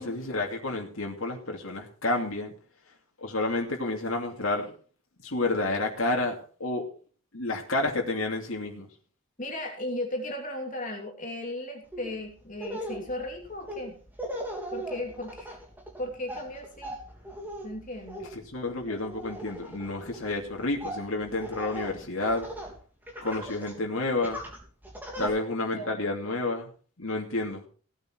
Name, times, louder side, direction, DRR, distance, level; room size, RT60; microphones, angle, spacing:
voice 1, 0.0-2.5 3.2-4.7 5.2-6.3 6.6-6.8 7.3-8.9 18.3-22.5 23.2-24.4 25.2-26.7 27.0-27.6, left 2 dB, 65° left, 0 dB, 2.7 m, -30 dB
voice 2, 9.4-13.9 14.7-15.6 16.0-17.0 17.6-18.3 25.2-25.3 25.7-26.0, left 1 dB, 35° left, 1 dB, 3.1 m, -36 dB
Laughter, 11.9-12.1 12.5-22.8 23.1-23.8 24.2-25.3, right 1 dB, 10° right, 3.5 m, -39 dB
17.5 x 9.0 x 4.5 m, 0.41 s
head